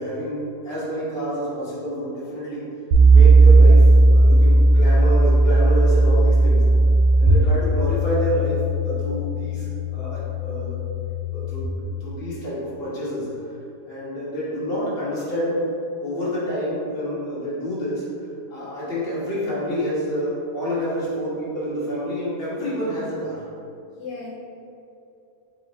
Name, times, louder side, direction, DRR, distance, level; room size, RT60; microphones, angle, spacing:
voice 1, 0.0-2.6 3.1-6.6 7.2-9.7 9.9-10.8 11.3-13.3 13.9-15.6 16.0-18.1 18.5-23.4, equal, 40° left, -9 dB, 1.5 m, -28 dB
sound 1, 2.9-11.6, right 2 dB, 85° right, 1.2 m, -16 dB
voice 2, 23.9-24.3, left 4 dB, 85° left, -4 dB, 1.4 m, -37 dB
4.1 x 3.1 x 4.1 m, 2.7 s
omnidirectional pair, 1.8 m